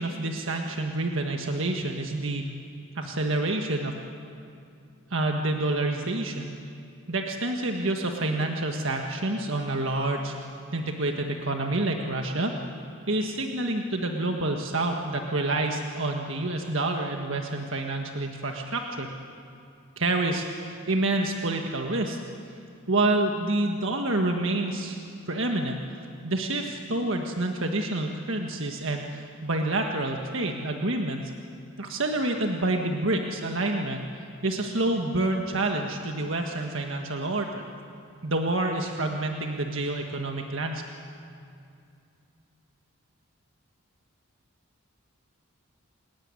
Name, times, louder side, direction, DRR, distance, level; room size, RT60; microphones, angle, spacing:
voice 1, 0.0-2.5 2.9-4.0 5.1-6.5 7.1-10.3 10.7-12.5 13.1-19.1 20.0-22.2 22.9-25.0 25.3-31.3 31.8-34.1 34.4-37.6 38.2-40.8, right 2 dB, 60° right, 3 dB, 1.6 m, -28 dB
28.5 x 20.0 x 9.7 m, 2.5 s
head